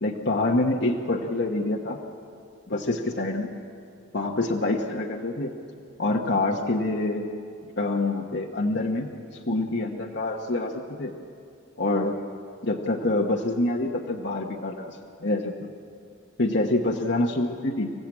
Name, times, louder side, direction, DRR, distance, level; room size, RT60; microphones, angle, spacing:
voice 1, 0.0-2.0 2.7-3.5 4.1-5.5 6.0-7.2 7.8-9.1 9.4-11.1 11.8-12.2 12.6-15.5 16.4-17.9, left 2 dB, 55° left, 0 dB, 1.2 m, -26 dB
27.0 x 15.0 x 8.6 m, 2.5 s
head